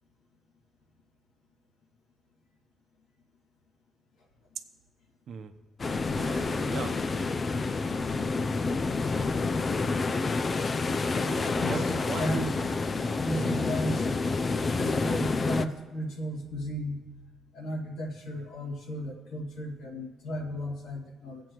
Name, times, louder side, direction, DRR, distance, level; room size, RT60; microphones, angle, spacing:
sound 1, 5.8-15.7, left 3 dB, 35° left, 0.5 m, -28 dB
voice 1, 6.1-7.0 11.2-12.4 13.4-13.6, right 6 dB, 65° right, 8 dB, 0.9 m, -39 dB
voice 2, 11.6-12.4 13.2-14.1 14.8-17.0 17.5-21.4, equal, 90° left, -1 dB, 2.1 m, -34 dB
19.5 x 8.0 x 3.1 m, 1.3 s
cardioid pair, 90°, 0 cm